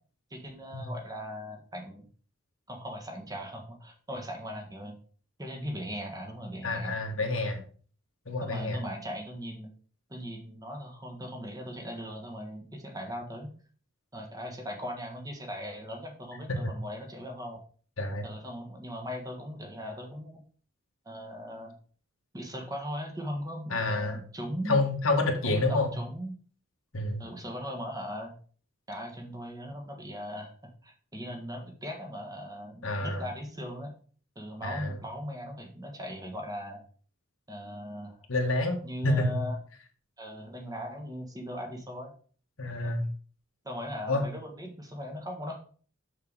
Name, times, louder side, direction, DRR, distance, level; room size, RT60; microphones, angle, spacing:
voice 1, 0.3-2.1 2.7-5.0 5.4-6.9 8.4-9.7 10.1-13.5 14.1-17.6 18.2-20.4 21.0-21.7 22.3-24.8 25.4-26.3 27.2-28.3 28.9-30.5 30.8-33.9 34.3-36.8 37.5-38.2 38.8-39.5 40.2-42.1 42.8-42.9 43.6-45.6, equal, 15° right, 2 dB, 1.5 m, -39 dB
voice 2, 6.6-7.6 8.3-8.8 16.5-16.7 18.0-18.2 23.7-24.2 24.7-25.9 26.9-27.3 32.8-33.2 34.6-35.0 38.3-38.8 39.0-39.4 42.6-43.0 44.1-44.2, left 2 dB, 80° left, 3 dB, 1.6 m, -28 dB
6.7 x 6.6 x 4.0 m, 0.43 s
head